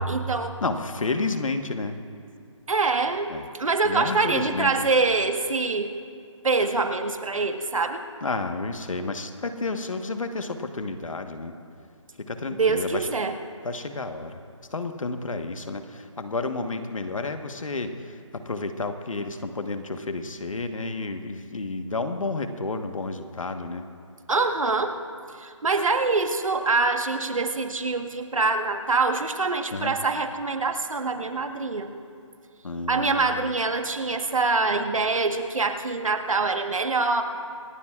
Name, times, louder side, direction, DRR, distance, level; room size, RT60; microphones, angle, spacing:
voice 1, 0.0-0.6 2.7-5.9 6.4-8.0 12.5-13.3 24.3-25.0 25.4-31.9 32.9-37.2, right 3 dB, 85° right, 6 dB, 1.4 m, -25 dB
voice 2, 0.6-2.0 3.3-3.4 3.8-4.9 8.2-11.5 12.2-13.1 13.6-14.4 14.7-23.8 29.7-30.0 32.6-33.5, left 3 dB, 80° left, 7 dB, 1.3 m, -31 dB
27.0 x 12.0 x 2.4 m, 2.3 s
hypercardioid pair, 180°, 17 cm